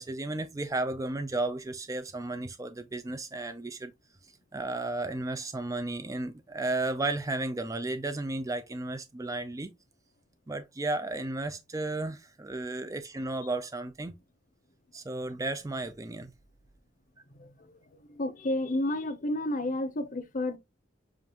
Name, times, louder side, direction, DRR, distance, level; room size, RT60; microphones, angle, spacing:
voice 1, 0.0-3.9 4.5-9.7 10.5-14.1 14.9-16.3, right 2 dB, 15° right, 0.4 m, -33 dB
voice 2, 17.4-17.8 18.1-20.6, left 1 dB, 45° left, 0.8 m, -31 dB
7.1 x 2.6 x 2.9 m
head